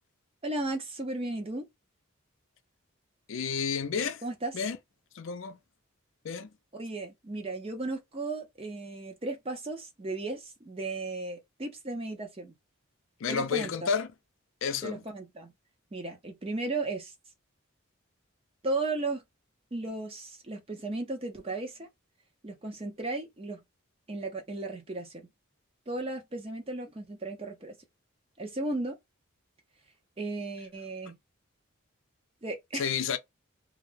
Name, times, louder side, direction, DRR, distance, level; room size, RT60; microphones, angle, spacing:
voice 1, 0.4-1.7 4.2-4.5 6.7-12.5 13.3-13.7 14.8-15.5 15.9-17.1 18.6-19.2 19.7-21.9 22.4-23.6 24.1-25.3 25.9-27.8 28.4-29.0 30.2-31.2 32.4-32.9, right 2 dB, 25° right, 0.6 m, -35 dB
voice 2, 3.3-4.2 4.5-4.8 5.2-5.6 6.2-6.5 13.2-14.1 14.6-15.0 32.7-33.2, left 6 dB, 65° left, 0.4 m, -30 dB
2.3 x 2.2 x 3.2 m
head